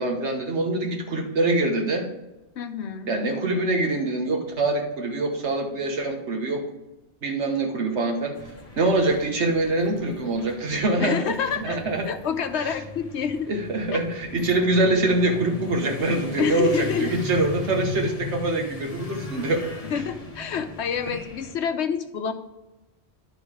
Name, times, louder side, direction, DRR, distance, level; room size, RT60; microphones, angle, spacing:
voice 1, 0.0-2.1 3.1-6.7 7.2-8.4 8.8-12.1 12.5-12.8 13.5-19.7, right 2 dB, 85° right, 3 dB, 1.5 m, -24 dB
voice 2, 2.6-3.1 11.0-11.8 12.0-13.5 13.9-14.0 16.4-17.3 19.8-22.3, left 7 dB, 80° left, 8 dB, 1.0 m, -28 dB
sound 1, 8.4-21.5, left 2 dB, 35° left, 1.1 m, -37 dB
11.5 x 3.9 x 4.9 m, 0.99 s
omnidirectional pair, 1.1 m